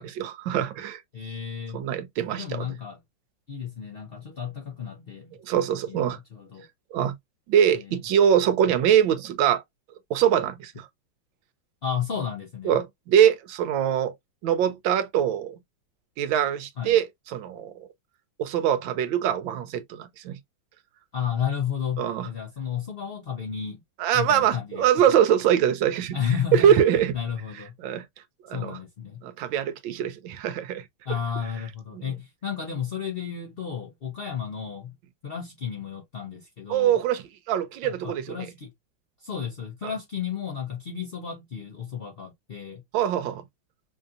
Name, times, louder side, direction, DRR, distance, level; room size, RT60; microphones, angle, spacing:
voice 1, 0.0-1.0 1.7-2.7 5.4-6.2 6.9-7.1 7.5-9.6 10.1-10.9 12.6-14.1 14.4-15.6 16.2-17.7 18.4-20.4 22.0-22.3 24.0-26.2 26.5-27.1 27.8-28.0 28.5-28.8 29.2-30.8 36.7-38.4 42.9-43.4, right 9 dB, 80° right, 1.4 m, -23 dB
voice 2, 1.1-1.8 2.3-3.0 3.5-5.4 5.9-6.7 11.8-12.8 16.8-17.0 21.1-23.8 24.1-25.1 26.1-26.8 27.1-27.8 28.5-29.2 31.0-34.9 35.2-37.0 37.8-38.7 39.2-42.8, left 8 dB, 80° left, 0.5 m, -32 dB
5.2 x 2.7 x 2.4 m
omnidirectional pair, 2.2 m